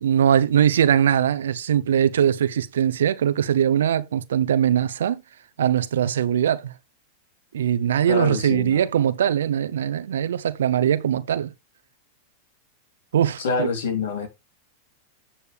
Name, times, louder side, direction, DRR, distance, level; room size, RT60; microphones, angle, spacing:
voice 1, 0.0-5.2 5.6-6.7 7.5-11.5 13.1-13.7, right 9 dB, 80° right, 0.8 m, -21 dB
voice 2, 8.1-8.9 13.4-14.3, left 4 dB, 75° left, 3.3 m, -26 dB
8.5 x 6.8 x 3.5 m
hypercardioid pair, 110°, 0 cm